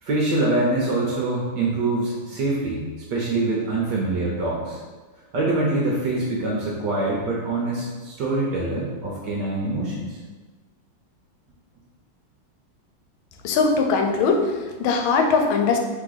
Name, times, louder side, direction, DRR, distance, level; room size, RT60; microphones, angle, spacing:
voice 1, 0.0-4.8 5.3-10.2, right 2 dB, 70° right, -4 dB, 1.2 m, -24 dB
voice 2, 13.4-15.8, left 4 dB, 85° left, 4 dB, 1.4 m, -20 dB
3.8 x 3.1 x 3.9 m, 1.3 s
omnidirectional pair, 2.2 m